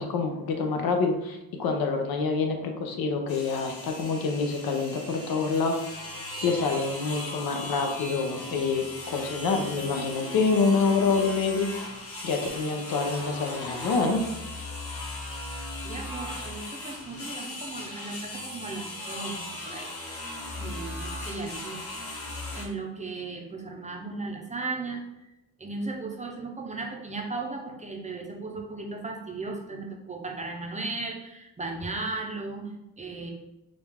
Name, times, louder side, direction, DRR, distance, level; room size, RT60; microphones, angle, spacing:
voice 1, 0.0-5.8 6.4-11.7 12.2-14.2, left 4 dB, 85° left, 4 dB, 0.8 m, -26 dB
sound 1, 3.3-22.7, left 2 dB, 40° left, 1.0 m, -38 dB
voice 2, 15.8-21.8 22.5-25.3 25.6-33.3, right 3 dB, 20° right, 1 dB, 0.6 m, -36 dB
5.0 x 2.4 x 3.5 m, 0.95 s
wide cardioid pair, 135°, 35 cm